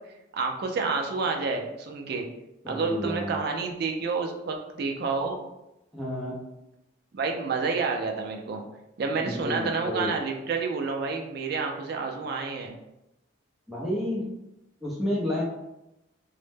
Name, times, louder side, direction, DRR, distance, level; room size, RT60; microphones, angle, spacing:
voice 1, 0.3-2.3 2.7-5.4 7.1-8.6 9.0-12.8, right 4 dB, 50° right, 2 dB, 0.3 m, -29 dB
voice 2, 2.6-3.4 5.9-6.4 9.2-10.2 13.7-14.3 14.8-15.4, left 1 dB, ahead, -6 dB, 0.5 m, -30 dB
2.1 x 2.0 x 3.2 m, 0.89 s
head